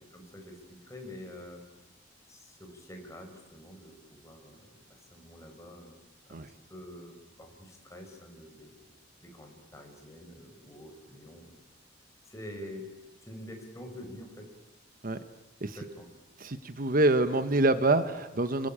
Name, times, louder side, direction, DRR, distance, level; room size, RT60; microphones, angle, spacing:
voice 1, 0.1-1.6 2.3-5.9 6.3-8.7 9.2-11.5 12.3-12.9 13.2-14.4 15.8-16.1, left 1 dB, 15° left, 3 dB, 5.5 m, -47 dB
voice 2, 16.4-18.7, right 2 dB, 45° right, 10 dB, 1.1 m, -26 dB
27.5 x 24.0 x 8.8 m, 1.1 s
head